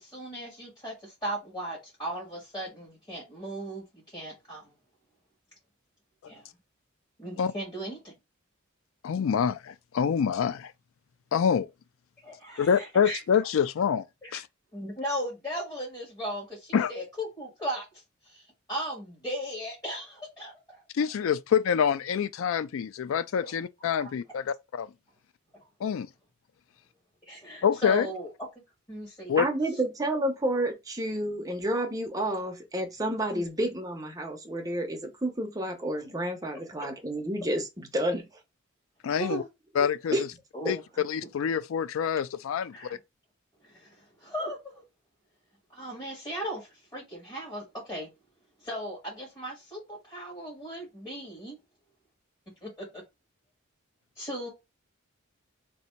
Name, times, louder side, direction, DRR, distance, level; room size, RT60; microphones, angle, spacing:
voice 1, 0.0-4.7 6.2-6.4 7.2-8.1 12.2-13.2 14.2-14.4 14.7-17.9 18.3-18.4 18.7-20.8 23.4-23.5 24.0-24.1 27.3-28.3 28.9-29.4 33.3-33.4 39.2-39.5 40.5-40.8 41.2-41.3 42.7-42.9 43.6-44.8 45.7-48.1 48.6-51.6 52.6-53.0 54.2-54.5, equal, 20° left, 2.0 m, -37 dB
voice 2, 9.0-10.7 11.3-11.7 12.6-14.0 14.3-14.4 16.7-16.9 20.9-24.9 25.8-26.1 27.6-28.1 29.3-29.4 39.0-39.4 39.8-40.2 40.7-40.8 41.0-42.7, left 7 dB, 70° left, 0.3 m, -26 dB
voice 3, 29.4-38.3 39.8-40.2 40.6-40.7, right 1 dB, 15° right, 0.9 m, -30 dB
3.3 x 2.8 x 4.3 m
head